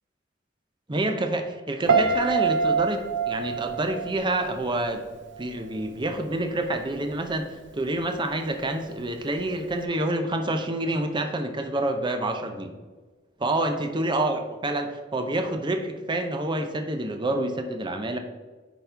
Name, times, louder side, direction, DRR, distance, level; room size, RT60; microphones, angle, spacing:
voice 1, 0.9-5.1 5.4-12.7 13.4-18.2, right 1 dB, 25° right, 5 dB, 0.7 m, -28 dB
Piano, 1.9-5.0 5.3-5.7, right 5 dB, 65° right, 0.6 m, -25 dB
10.0 x 4.2 x 3.4 m, 1.3 s
head